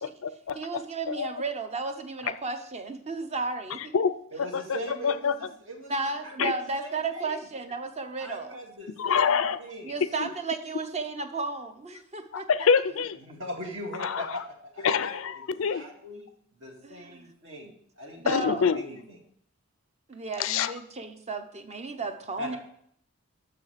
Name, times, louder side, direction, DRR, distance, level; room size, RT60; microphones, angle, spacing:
voice 1, 0.0-0.8 1.1-1.3 3.9-4.8 5.0-5.3 6.4-6.5 9.0-9.6 10.0-10.3 12.3-13.2 14.0-14.3 14.8-15.8 18.3-18.8 20.4-20.7, left 6 dB, 65° left, 13 dB, 0.4 m, -26 dB
voice 2, 0.5-3.9 5.9-8.6 9.8-12.5 16.8-17.3 18.2-18.7 20.1-22.6, right 3 dB, 30° right, 7 dB, 0.8 m, -34 dB
voice 3, 4.3-6.5 6.8-7.4 8.2-10.0 13.2-16.3 16.6-19.2 22.4-22.6, equal, 60° right, 0 dB, 2.2 m, -40 dB
6.8 x 6.8 x 6.6 m, 0.67 s
head